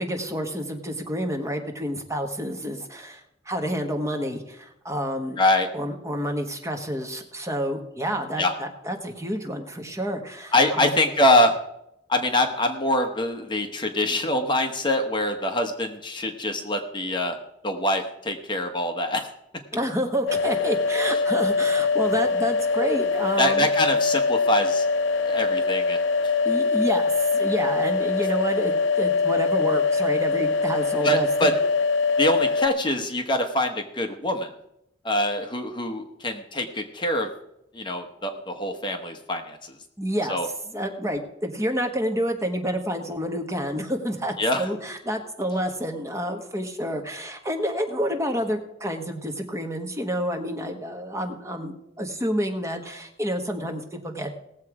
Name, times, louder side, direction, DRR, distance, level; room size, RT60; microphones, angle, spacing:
voice 1, 0.0-5.4 5.7-10.9 19.7-23.7 26.4-31.5 40.0-40.4 40.7-54.3, equal, 15° right, 4 dB, 1.3 m, -29 dB
voice 2, 5.4-5.7 8.4-8.5 10.5-11.6 12.1-17.4 17.6-19.3 23.4-24.9 25.2-26.3 31.0-31.5 32.2-34.5 35.0-37.3 37.7-39.7 40.3-40.5 44.4-44.7, left 1 dB, 25° left, 4 dB, 1.1 m, -24 dB
sound 1, 20.3-32.7, left 4 dB, 80° left, 0.5 m, -23 dB
18.0 x 7.5 x 4.8 m, 0.80 s
head